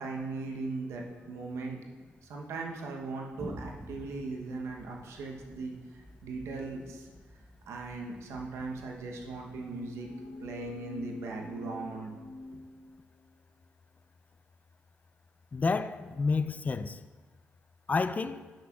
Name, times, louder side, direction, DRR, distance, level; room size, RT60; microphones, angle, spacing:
voice 1, 0.0-1.8 2.2-5.7 6.2-7.1 7.7-10.1 10.4-12.1, right 3 dB, 80° right, 0.9 m, -38 dB
Thunder, 3.4-12.8, equal, 10° right, 1.0 m, -51 dB
sound 1, 9.6-13.3, left 2 dB, 85° left, 0.8 m, -47 dB
voice 2, 15.5-17.0 17.9-18.4, left 4 dB, 35° left, 0.4 m, -29 dB
10.5 x 6.0 x 2.4 m
cardioid pair, 60°, 5 cm